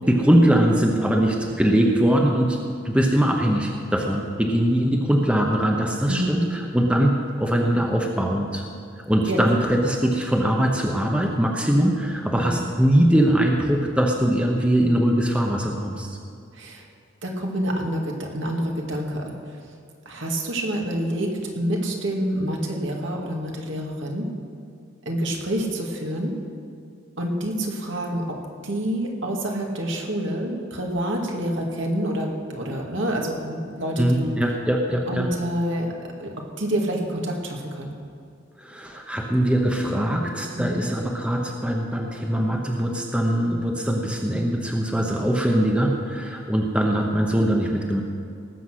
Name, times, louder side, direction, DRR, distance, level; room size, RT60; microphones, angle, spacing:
voice 1, 0.1-2.6 2.8-8.6 9.1-16.2 34.0-35.3 38.6-48.0, right 1 dB, 5° right, 0 dB, 0.9 m, -21 dB
voice 2, 6.1-6.4 9.3-9.4 12.3-12.7 16.5-16.8 17.2-19.3 20.1-24.3 25.1-26.4 27.2-28.4 28.6-34.3 35.1-35.9 36.2-37.9 40.5-40.8, right 1 dB, 65° right, 0 dB, 2.1 m, -27 dB
18.5 x 8.1 x 6.3 m, 2.4 s
head